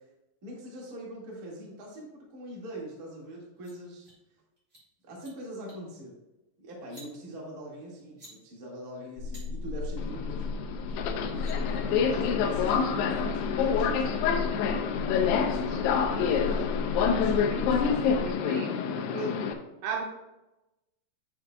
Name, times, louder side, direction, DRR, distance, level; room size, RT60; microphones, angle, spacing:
voice 1, 0.4-4.1 5.0-6.1 6.6-10.5 11.5-16.8 17.1-18.2, right 1 dB, 50° right, -3 dB, 1.0 m, -43 dB
sound 1, 3.4-3.7 4.0-4.2 4.6-4.8 5.1-5.3 5.7-5.9 6.8-7.1 8.0-8.3 9.3-9.4 10.8-10.9 11.1-11.6, right 1 dB, 30° right, 1.6 m, -52 dB
sound 2, 9.2-18.3, left 4 dB, 55° left, 1.2 m, -35 dB
Subway metro underground, 10.0-19.5, left 6 dB, 80° left, 2.4 m, -27 dB
voice 2, 11.2-11.7 17.5-17.7 18.2-19.4 19.8-20.1, right 3 dB, 80° right, 2 dB, 2.6 m, -37 dB
10.0 x 7.4 x 2.3 m, 0.98 s
omnidirectional pair, 5.3 m